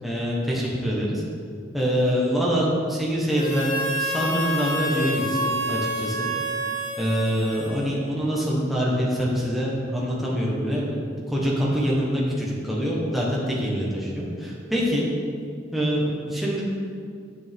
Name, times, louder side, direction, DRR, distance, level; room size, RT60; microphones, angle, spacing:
voice 1, 0.0-1.2 1.7-3.7 4.0-6.3 7.0-11.0 11.3-15.1 15.7-16.6, equal, ahead, -5 dB, 1.3 m, -25 dB
Harmonica, 3.3-8.2, right 1 dB, 45° left, 2.0 m, -28 dB
8.3 x 7.0 x 3.6 m, 2.2 s
head